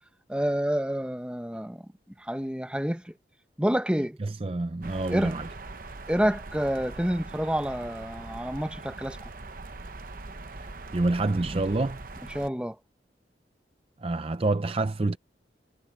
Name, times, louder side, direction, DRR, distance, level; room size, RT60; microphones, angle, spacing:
voice 1, 0.3-1.8 2.2-3.1 3.6-4.2 5.1-5.3 6.1-9.2 12.3-12.8, equal, 5° right, 0.9 m, -28 dB
voice 2, 4.2-5.5 10.9-12.0 14.0-15.2, right 2 dB, 30° right, 0.5 m, -27 dB
sound 1, 4.8-12.5, right 3 dB, 50° right, 0.9 m, -42 dB
head